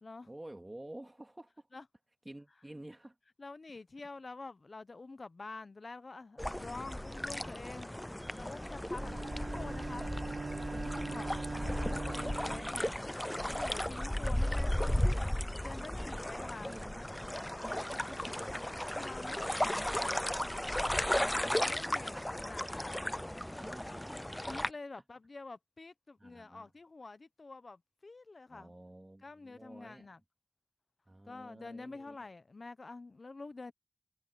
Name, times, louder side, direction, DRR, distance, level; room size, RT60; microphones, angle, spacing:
voice 1, 0.3-1.7 2.2-3.2 8.2-9.2 10.9-12.0 12.3-14.8 15.9-17.1 17.6-18.4 19.3-20.3 20.8-22.2 23.6-24.2 26.2-26.7 28.5-30.1 31.1-32.3, right 1 dB, 25° right, 2.4 m, -52 dB
voice 2, 3.4-7.9 8.4-10.1 10.7-13.0 13.5-15.1 15.6-16.8 18.9-20.1 21.3-23.1 24.5-28.7 29.2-30.2 31.3-33.7, left 3 dB, 65° left, 0.9 m, -47 dB
sound 1, 6.4-24.7, left 1 dB, 15° left, 0.5 m, -35 dB
Bowed string instrument, 8.9-13.5, right 4 dB, 85° right, 0.9 m, -42 dB
wide cardioid pair, 60°, 0 cm